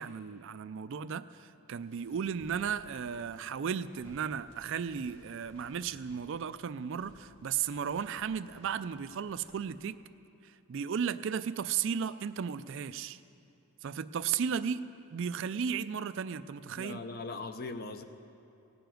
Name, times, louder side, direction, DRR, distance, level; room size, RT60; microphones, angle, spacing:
voice 1, 0.0-10.0 10.7-13.2 13.8-14.8 15.1-17.0, right 7 dB, 60° right, 13 dB, 0.4 m, -35 dB
sound 1, 1.8-9.9, equal, 75° left, 3.6 m, -61 dB
voice 2, 16.8-18.0, left 3 dB, 45° left, 9 dB, 0.7 m, -40 dB
16.0 x 6.9 x 9.2 m, 2.9 s
head